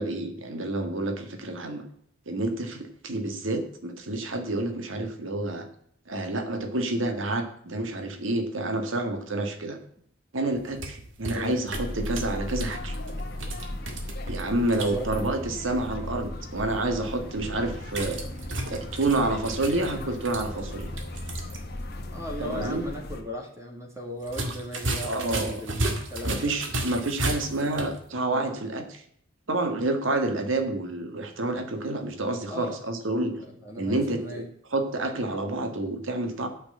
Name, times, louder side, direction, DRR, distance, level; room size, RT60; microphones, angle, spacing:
voice 1, 0.0-1.8 2.3-5.7 6.1-9.8 10.3-12.9 14.3-18.2 18.7-20.9 22.4-22.8 25.0-25.6 26.2-29.0 29.5-33.4 33.8-34.4 34.7-36.5, right 2 dB, 85° right, 6 dB, 1.7 m, -29 dB
sound 1, 10.5-15.3 17.9-21.6 21.9-22.0 24.2-28.0, right 2 dB, 70° right, 1.9 m, -34 dB
sound 2, 11.7-23.2, left 1 dB, 55° left, 1.4 m, -36 dB
voice 2, 14.6-15.0 22.1-26.5 28.2-28.4 32.5-32.8 33.4-34.5, left 1 dB, 15° right, 1 dB, 2.0 m, -37 dB
8.8 x 6.5 x 7.6 m, 0.65 s
head